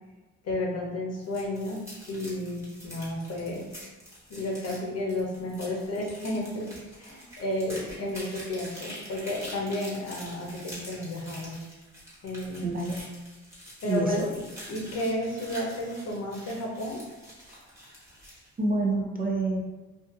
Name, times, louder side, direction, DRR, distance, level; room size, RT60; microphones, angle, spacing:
voice 1, 0.4-3.6 4.3-6.7 7.0-11.6 12.2-12.7 13.8-14.4 14.7-17.0, left 1 dB, 55° left, -2 dB, 0.8 m, -32 dB
sound 1, 1.1-18.5, equal, 10° right, 1.2 m, -46 dB
voice 2, 12.6-13.0 13.8-14.3 18.6-19.6, right 2 dB, 30° right, 0 dB, 0.5 m, -27 dB
2.6 x 2.4 x 2.4 m, 1.2 s
cardioid pair, 90°, 30 cm